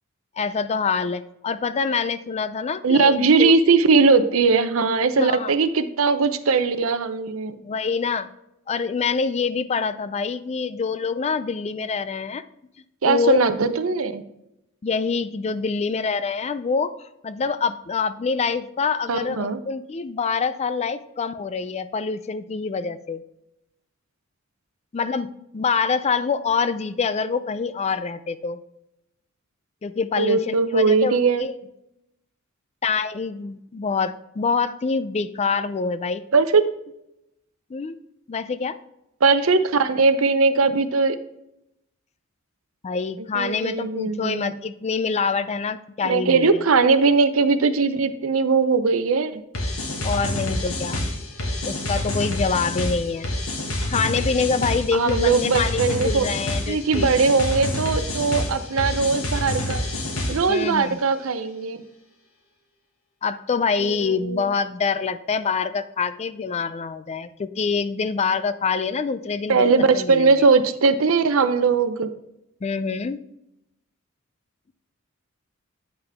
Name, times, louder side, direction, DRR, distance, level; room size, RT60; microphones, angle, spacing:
voice 1, 0.4-3.5 5.2-5.5 7.6-8.3 8.7-12.4 13.0-13.4 14.8-16.9 17.2-23.2 24.9-28.6 29.8-31.5 32.8-36.2 37.7-38.0 38.3-38.8 42.8-46.6 50.0-51.1 51.6-53.3 53.9-57.4 60.5-61.0 63.2-70.3 72.6-73.2, left 5 dB, 30° left, 13 dB, 0.4 m, -25 dB
voice 2, 2.8-7.6 13.0-14.2 19.1-19.6 30.2-31.4 36.3-36.6 39.2-41.2 43.3-44.5 46.0-49.4 54.9-56.3 56.7-59.8 60.3-61.8 63.8-64.4 69.5-72.1, right 4 dB, 70° right, 11 dB, 0.6 m, -20 dB
sound 1, 49.5-60.6, left 1 dB, 80° left, 1.7 m, -27 dB
8.8 x 5.8 x 3.4 m, 0.84 s
head